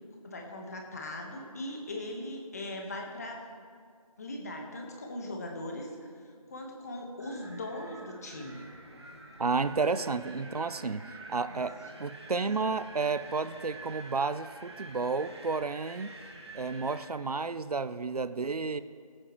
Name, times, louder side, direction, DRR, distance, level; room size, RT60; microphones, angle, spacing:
voice 1, 0.2-3.4 4.2-8.7 9.8-10.2 11.5-11.7, left 1 dB, 25° left, 1 dB, 1.3 m, -40 dB
Wind, 7.2-17.1, right 2 dB, 45° right, 1.8 m, -48 dB
voice 2, 9.4-11.0 11.3-16.1 16.5-18.8, right 4 dB, 80° right, 14 dB, 0.6 m, -31 dB
22.0 x 8.7 x 3.1 m, 2.1 s
figure-of-eight pair, 170°, 19 cm